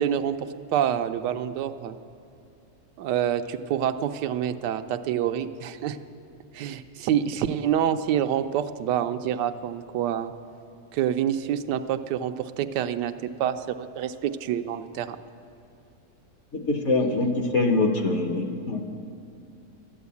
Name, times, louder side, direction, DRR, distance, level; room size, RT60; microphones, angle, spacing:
voice 1, 0.0-2.0 3.0-6.0 6.5-10.3 10.9-15.2, right 10 dB, 90° right, 9 dB, 1.2 m, -27 dB
voice 2, 16.5-18.8, left 2 dB, 55° left, 5 dB, 1.0 m, -24 dB
12.0 x 10.0 x 8.2 m, 2.5 s
omnidirectional pair, 1.8 m